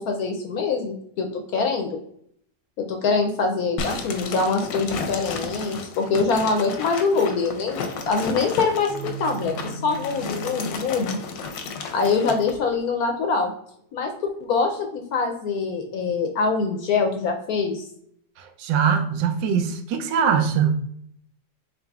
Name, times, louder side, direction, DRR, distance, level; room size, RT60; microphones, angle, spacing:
voice 1, 0.0-1.9 2.8-11.2 11.9-13.5 13.9-14.1 14.4-17.9, left 4 dB, 70° left, 3 dB, 0.9 m, -24 dB
sound 1, 3.8-12.6, left 5 dB, 85° left, 1.3 m, -33 dB
sound 2, 8.2-13.1, right 3 dB, 55° right, 1.4 m, -39 dB
voice 2, 18.4-20.8, right 7 dB, 85° right, 7 dB, 1.3 m, -22 dB
3.9 x 3.8 x 2.3 m, 0.69 s
omnidirectional pair, 1.9 m